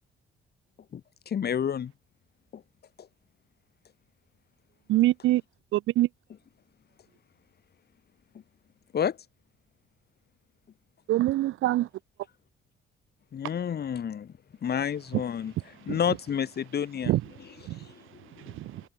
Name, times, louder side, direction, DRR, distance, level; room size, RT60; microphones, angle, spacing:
voice 1, 1.3-1.9 2.5-2.6 3.0-3.1 8.9-9.2 13.3-14.3 14.6-18.5, left 8 dB, 55° left, 3.1 m, -31 dB
voice 2, 4.9-5.4 5.7-6.1 11.1-11.9 17.1-17.2 17.7-17.8 18.6-18.8, right 15 dB, 90° right, 3.4 m, -24 dB
cardioid pair, 90°, 20 cm